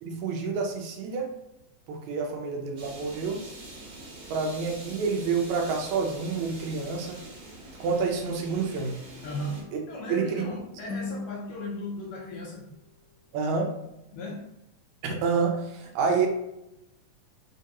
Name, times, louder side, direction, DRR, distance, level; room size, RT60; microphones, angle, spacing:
voice 1, 0.0-1.3 1.9-3.4 4.3-7.2 7.8-9.0 10.1-10.5 13.3-13.7 15.0-16.3, right 5 dB, 75° right, 2 dB, 1.8 m, -28 dB
sound 1, 2.8-9.6, right 2 dB, 50° right, 1.6 m, -45 dB
sound 2, 9.2-12.6, left 3 dB, 90° left, 1.2 m, -41 dB
voice 2, 9.2-9.6 9.9-12.7 14.1-14.4, left 1 dB, 75° left, -2 dB, 1.6 m, -36 dB
4.5 x 3.5 x 2.9 m, 0.84 s
omnidirectional pair, 3.7 m